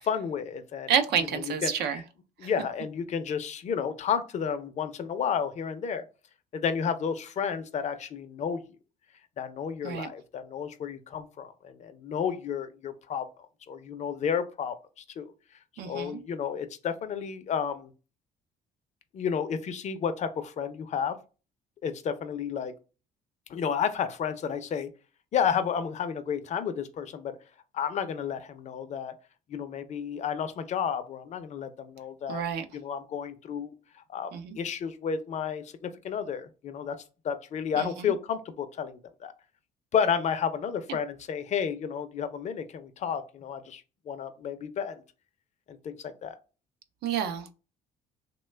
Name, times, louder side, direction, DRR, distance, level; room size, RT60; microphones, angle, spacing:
voice 1, 0.0-0.9 1.3-2.0 2.4-6.0 6.5-8.6 9.4-13.3 13.7-15.3 15.8-17.9 19.1-21.2 21.8-22.7 23.5-24.9 25.3-27.4 27.7-29.1 29.5-32.4 32.7-33.7 34.1-37.0 37.2-39.3 39.9-45.0 45.7-46.3, left 7 dB, 45° left, 0.5 m, -31 dB
voice 2, 0.9-2.0 2.4-2.5 9.8-10.1 15.8-16.2 32.3-32.6 34.3-34.6 37.8-38.1 47.0-47.5, right 7 dB, 75° right, 0.5 m, -29 dB
3.1 x 2.2 x 3.2 m
cardioid pair, 110°, 17 cm